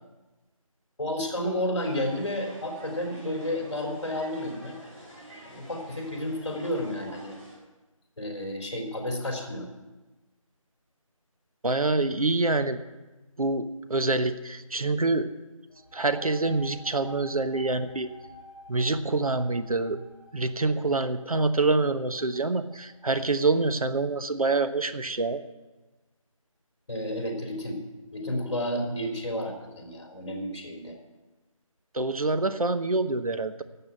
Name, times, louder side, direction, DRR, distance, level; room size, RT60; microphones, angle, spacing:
voice 1, 1.0-4.8 5.5-7.4 8.2-9.7 26.9-27.8 28.1-31.0, left 1 dB, 55° left, 1 dB, 3.6 m, -31 dB
sound 1, 1.8-7.6, right 1 dB, 25° right, 5.2 m, -48 dB
voice 2, 11.6-12.8 13.4-15.3 15.9-18.1 18.7-20.0 20.3-25.4 31.9-33.6, right 3 dB, 90° right, 10 dB, 1.1 m, -26 dB
sound 2, 15.7-23.1, equal, 5° right, 3.5 m, -50 dB
12.5 x 7.9 x 8.8 m, 1.1 s
figure-of-eight pair, 170°, 18 cm